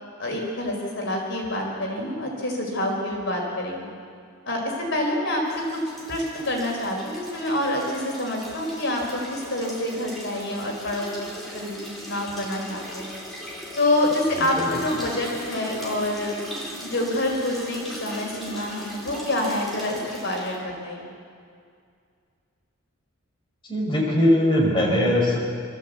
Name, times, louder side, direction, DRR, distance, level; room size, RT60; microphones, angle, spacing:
voice 1, 0.2-3.9 4.5-11.1 11.5-13.1 13.8-16.3 16.8-21.1, left 1 dB, 55° left, -1 dB, 4.4 m, -27 dB
sound 1, 5.5-20.6, equal, ahead, 4.5 m, -39 dB
voice 2, 14.3-14.8 23.7-25.4, left 1 dB, 25° left, -3 dB, 4.4 m, -21 dB
24.5 x 14.0 x 8.3 m, 2.2 s
head